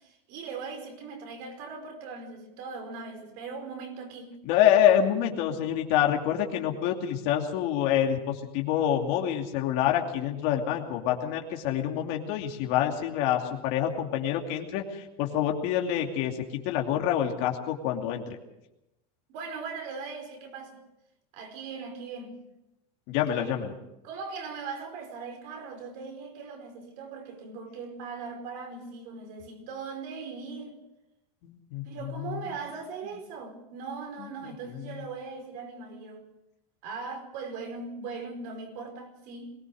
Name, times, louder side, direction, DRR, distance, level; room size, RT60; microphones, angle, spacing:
voice 1, 0.0-4.3 19.3-20.8 21.3-22.4 23.3-23.5 24.0-30.8 31.8-36.2 36.8-39.5, right 4 dB, 55° right, 5.0 m, -39 dB
voice 2, 4.4-18.2 23.1-23.7 31.4-31.8 32.2-32.6 34.4-34.5, left 10 dB, 55° left, 2.6 m, -26 dB
22.5 x 18.0 x 6.5 m
supercardioid pair, 155°, 19 cm